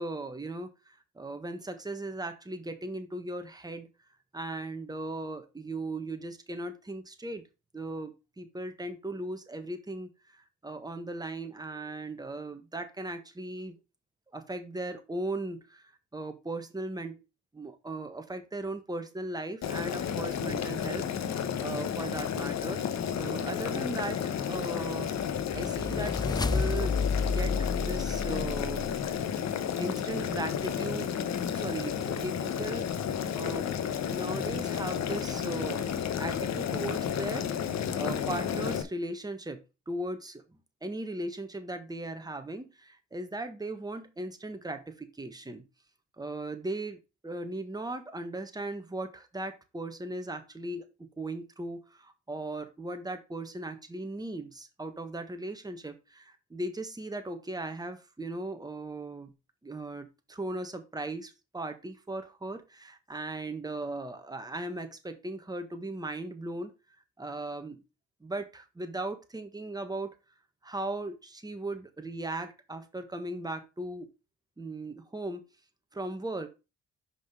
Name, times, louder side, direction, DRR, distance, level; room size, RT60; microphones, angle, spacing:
voice 1, 0.0-3.9 4.3-7.5 7.7-13.8 14.3-17.2 17.5-22.8 23.1-25.2 25.5-27.0 27.2-28.9 29.8-32.9 33.3-33.7 34.1-37.5 38.0-45.7 46.2-59.3 59.6-66.7 67.2-67.8 68.2-70.1 70.6-74.1 74.6-75.5 75.9-76.5, right 2 dB, 15° right, 7 dB, 1.4 m, -38 dB
Boiling, 19.6-38.8, left 8 dB, 65° left, 1.0 m, -32 dB
sound 1, 24.9-29.1, left 4 dB, 15° left, 0.5 m, -31 dB
5.9 x 5.2 x 5.0 m, 0.28 s
cardioid pair, 90°, 30 cm